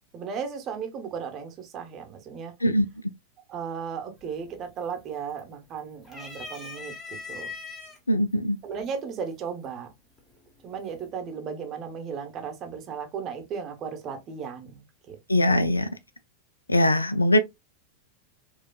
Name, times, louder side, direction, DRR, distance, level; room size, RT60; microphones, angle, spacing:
voice 1, 0.1-2.5 3.5-6.9 7.3-7.5 8.6-9.9 10.6-15.2 15.5-15.6, right 6 dB, 30° right, 0.8 m, -35 dB
sound 1, 4.2-4.6 4.9-5.6 6.0-8.0 8.8-8.9 10.2-10.6, left 4 dB, 20° left, 1.0 m, -40 dB
voice 2, 8.1-8.6 15.3-15.9 16.7-17.4, left 1 dB, 80° left, 0.3 m, -21 dB
4.4 x 2.3 x 2.2 m
figure-of-eight pair, 90°, 0 cm